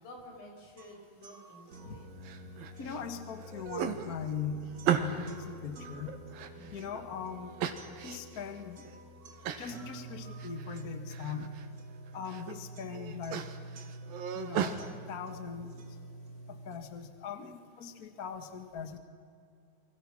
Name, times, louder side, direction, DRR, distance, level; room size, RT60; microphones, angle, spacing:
voice 1, 0.0-2.1 2.7-2.9 6.5-6.9, left 1 dB, 80° left, 1 dB, 6.9 m, -52 dB
sound 1, 0.8-16.8, right 1 dB, 50° right, 1.0 m, -48 dB
sound 2, 2.2-3.0 3.4-5.4 5.9-7.0 7.6-8.4 8.9-9.0 9.4-9.8 10.1-10.8 11.1-11.7 12.1-12.6 12.9-14.8, right 9 dB, 80° right, 3.2 m, -35 dB
voice 2, 2.4-6.2 6.7-7.6 8.0-9.0 9.6-11.5 12.1-13.4 14.3-15.7 16.5-19.0, left 6 dB, 45° left, 8 dB, 1.2 m, -40 dB
29.0 x 24.0 x 6.2 m, 2.4 s
omnidirectional pair, 4.1 m